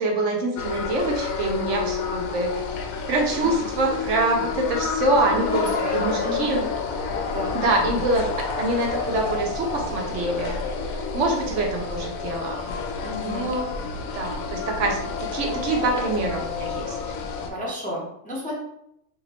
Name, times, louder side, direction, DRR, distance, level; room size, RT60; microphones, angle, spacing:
voice 1, 0.0-2.5 3.1-6.7 7.5-8.3 8.6-10.6 11.1-12.7 13.2-13.7 14.1-17.0, right 2 dB, 65° right, 1 dB, 1.0 m, -25 dB
sound 1, 0.6-17.5, left 5 dB, 85° left, 1.0 m, -29 dB
voice 2, 5.3-6.6 7.3-7.6 11.4-11.6 13.0-13.5 17.5-18.6, equal, 10° left, -5 dB, 0.7 m, -33 dB
2.9 x 2.9 x 4.2 m, 0.77 s
omnidirectional pair, 1.4 m